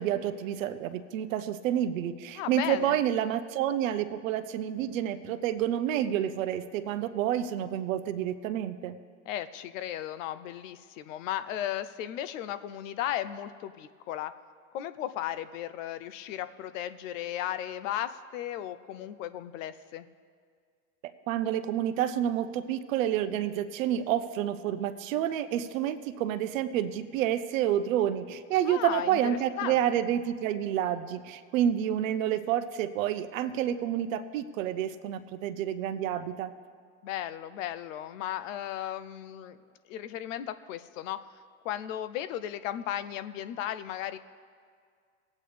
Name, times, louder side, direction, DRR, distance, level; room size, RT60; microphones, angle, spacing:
voice 1, 0.0-9.0 21.3-36.5, right 10 dB, 80° right, 11 dB, 0.7 m, -29 dB
voice 2, 2.3-3.0 9.3-14.3 14.7-20.1 28.6-29.8 37.0-39.6 39.9-41.2 41.6-44.2, left 11 dB, 75° left, 13 dB, 0.7 m, -35 dB
19.0 x 8.4 x 3.3 m, 2.1 s
supercardioid pair, 110°, 39 cm